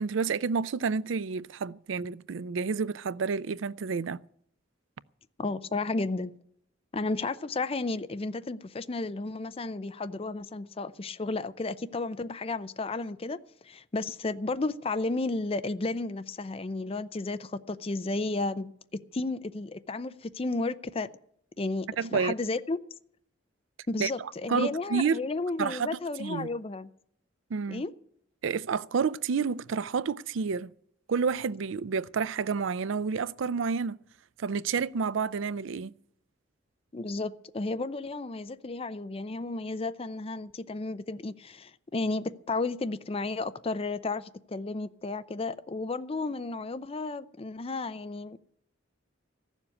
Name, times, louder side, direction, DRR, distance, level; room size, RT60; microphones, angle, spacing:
voice 1, 0.0-4.2 22.0-22.3 24.0-24.1 24.5-25.2 25.6-25.9 26.2-26.5 27.5-27.8 28.4-30.7 31.1-34.0 34.4-35.9, right 5 dB, 85° right, 0.4 m, -29 dB
voice 2, 5.4-6.3 6.9-21.1 21.6-22.8 23.9-26.9 27.7-27.9 36.9-48.4, left 3 dB, 30° left, 0.5 m, -33 dB
15.0 x 7.2 x 9.6 m
head